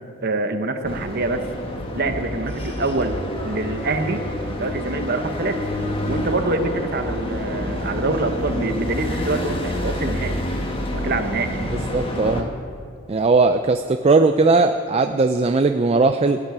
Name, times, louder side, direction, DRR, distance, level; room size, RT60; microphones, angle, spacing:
voice 1, 0.2-1.4 1.9-3.1 3.4-4.2 4.5-5.6 6.1-10.3 10.9-11.5, right 2 dB, 45° right, 6 dB, 1.1 m, -25 dB
sound 1, 0.8-12.4, left 1 dB, 25° left, 1.4 m, -28 dB
voice 2, 11.7-12.5 13.1-16.4, right 3 dB, 30° right, 7 dB, 0.4 m, -18 dB
16.0 x 7.4 x 9.5 m, 2.5 s
head